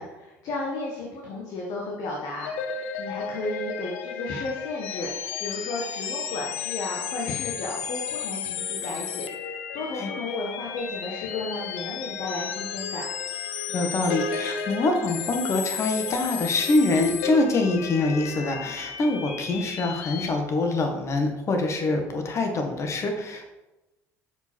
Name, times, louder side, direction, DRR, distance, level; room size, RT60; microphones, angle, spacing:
voice 1, 0.0-9.3 9.7-13.0, left 2 dB, 65° left, -2 dB, 1.3 m, -33 dB
sound 1, 2.4-20.3, left 6 dB, 85° left, 0.6 m, -33 dB
voice 2, 13.7-23.5, left 2 dB, 45° left, 4 dB, 1.4 m, -25 dB
6.5 x 5.0 x 4.4 m, 1.0 s
hypercardioid pair, 75°, 7 cm